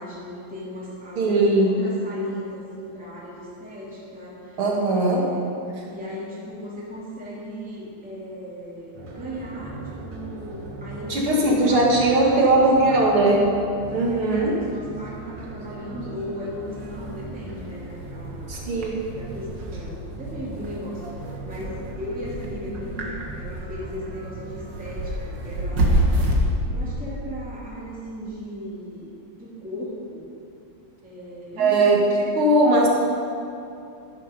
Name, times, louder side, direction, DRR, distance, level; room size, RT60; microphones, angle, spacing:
voice 1, 0.0-5.4 5.9-11.2 11.5-13.4 14.1-18.5 19.2-21.1 21.4-26.0 26.7-30.3 31.0-32.1, equal, 5° right, -8 dB, 2.8 m, -36 dB
voice 2, 1.2-1.7 4.6-5.3 11.1-13.4 13.9-14.6 18.5-19.1 31.6-32.9, right 2 dB, 75° right, -2 dB, 2.9 m, -19 dB
sound 1, 8.9-26.4, right 1 dB, 55° right, 2.1 m, -31 dB
12.0 x 11.0 x 5.3 m, 2.6 s
omnidirectional pair, 2.4 m